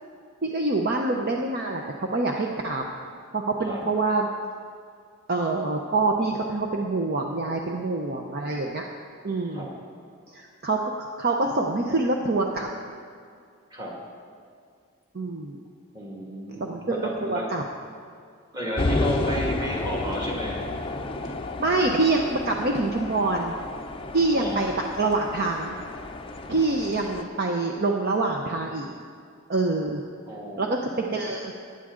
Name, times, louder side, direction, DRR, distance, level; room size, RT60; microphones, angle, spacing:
voice 1, 0.4-2.8 3.3-4.3 5.3-8.8 9.2-9.7 10.3-12.7 15.1-15.6 16.6-17.6 21.6-23.5 24.1-24.7 25.0-25.8 26.5-28.9 29.5-30.0 30.6-30.8 31.1-31.5, right 3 dB, 45° right, 1 dB, 0.7 m, -25 dB
voice 2, 15.9-17.5 18.5-20.9 21.2-21.5 24.3-24.8 30.3-31.1, equal, 20° right, -3 dB, 2.0 m, -33 dB
sound 1, 18.8-27.2, left 2 dB, 25° left, 0.5 m, -31 dB
16.0 x 9.7 x 3.8 m, 2.2 s
head